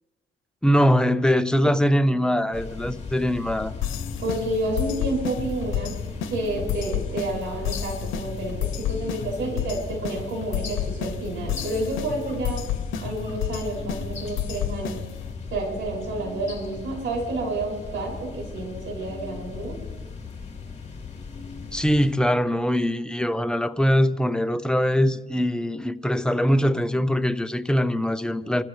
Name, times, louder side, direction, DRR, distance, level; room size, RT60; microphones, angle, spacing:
voice 1, 0.6-3.7 21.7-28.6, equal, 5° left, 0.9 m, -22 dB
sound 1, 2.5-22.1, left 5 dB, 35° left, 3.8 m, -37 dB
sound 2, 3.8-15.3, left 9 dB, 85° left, 0.9 m, -31 dB
voice 2, 4.2-6.0 6.3-12.7 13.0-15.0 15.5-19.8, right 2 dB, 75° right, 6.7 m, -30 dB
27.0 x 14.5 x 3.3 m
cardioid pair, 90°, 20 cm